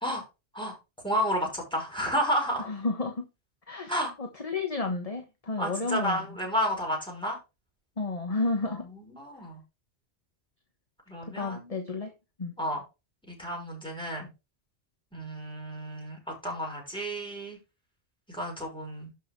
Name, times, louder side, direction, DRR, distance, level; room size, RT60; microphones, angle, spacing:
voice 1, 1.0-2.7 3.9-4.1 5.6-7.4 8.9-9.6 11.1-11.7 12.6-12.8 13.3-14.3 15.1-17.6 18.3-19.1, equal, 5° left, 5.9 m, -31 dB
voice 2, 2.6-3.3 3.7-6.3 8.0-8.8 11.2-12.1 12.4-12.5, left 3 dB, 30° left, 1.4 m, -31 dB
12.0 x 6.4 x 3.3 m
omnidirectional pair, 1.3 m